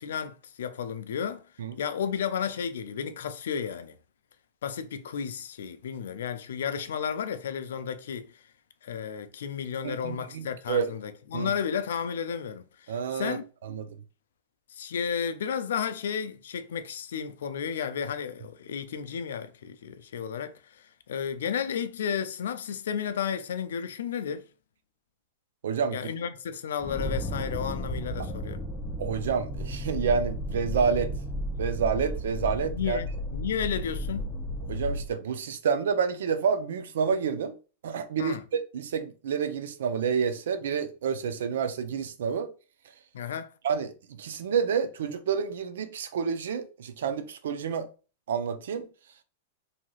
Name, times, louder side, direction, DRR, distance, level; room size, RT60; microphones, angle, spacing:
voice 1, 0.0-1.4 1.8-4.0 4.6-8.3 8.8-12.6 13.1-13.4 14.7-20.5 21.1-24.4 25.9-28.6 32.6-34.4 38.2-38.4 43.1-43.5, left 7 dB, 85° left, 0.3 m, -32 dB
voice 2, 9.8-10.9 11.3-11.5 12.9-13.4 13.6-13.9 25.6-26.0 29.0-31.1 31.6-33.0 34.7-37.5 37.8-38.4 38.7-42.5 43.6-43.9 44.2-47.9 48.3-48.9, right 6 dB, 85° right, 0.4 m, -29 dB
sound 1, 26.8-35.1, equal, 15° left, 0.4 m, -33 dB
2.7 x 2.3 x 3.0 m
supercardioid pair, 150°, 0 cm